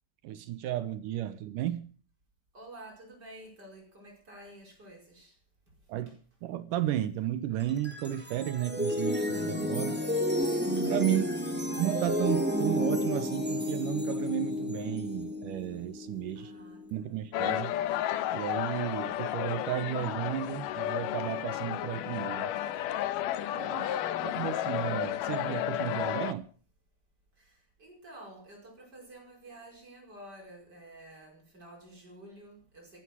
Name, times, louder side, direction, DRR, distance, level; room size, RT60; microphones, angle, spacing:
voice 1, 0.2-1.9 5.9-10.0 10.9-11.2 11.8-16.5 16.9-17.8 18.3-22.5 23.5-26.5, right 12 dB, 75° right, 2.0 m, -33 dB
voice 2, 2.5-5.4 11.1-11.7 16.4-17.1 23.9-24.5 27.4-33.0, right 1 dB, 25° right, 5.4 m, -51 dB
sound 1, 7.6-16.9, left 1 dB, 5° right, 1.4 m, -31 dB
sound 2, 17.3-26.3, left 12 dB, 75° left, 2.0 m, -32 dB
14.5 x 11.5 x 6.1 m
omnidirectional pair, 4.7 m